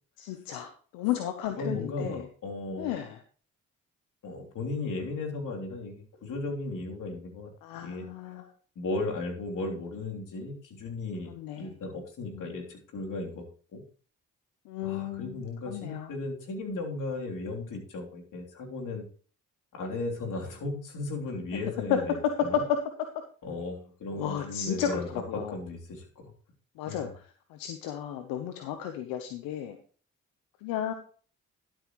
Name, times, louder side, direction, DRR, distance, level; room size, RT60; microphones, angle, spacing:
voice 1, 0.2-2.2 2.8-3.1 7.6-8.4 11.3-11.7 12.3-12.6 14.7-15.4 15.7-16.1 21.9-22.0 22.5-22.6 24.1-25.5 26.8-27.2 27.5-29.8 30.6-30.9, left 10 dB, 90° left, 7 dB, 0.9 m, -33 dB
voice 2, 1.5-2.9 4.2-7.5 7.8-8.3 8.7-13.4 13.7-13.8 14.8-19.1 19.7-22.6 23.4-26.3 26.9-27.1, left 2 dB, 65° left, 1 dB, 3.4 m, -36 dB
11.5 x 8.7 x 3.1 m, 0.41 s
supercardioid pair, 55°, 34 cm